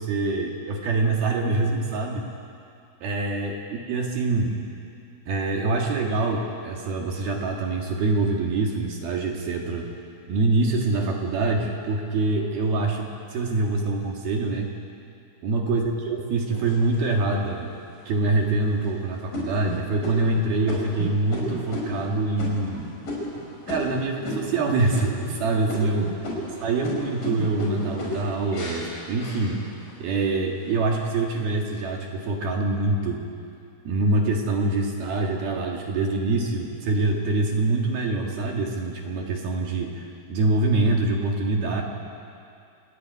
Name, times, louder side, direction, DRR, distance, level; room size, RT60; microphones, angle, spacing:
voice 1, 0.0-2.3 3.0-4.6 5.3-9.9 10.3-14.7 15.4-17.7 18.1-22.9 23.7-26.1 26.6-29.6 30.0-33.2 33.8-41.8, right 3 dB, 60° right, 1 dB, 3.1 m, -25 dB
sound 1, 16.5-17.3 17.9-18.0 18.5-18.9 19.3-24.6 24.9-25.4 25.7-30.0 30.5-31.0, left 1 dB, 40° left, 6.4 m, -33 dB
28.5 x 15.5 x 9.5 m, 2.5 s
omnidirectional pair, 5.9 m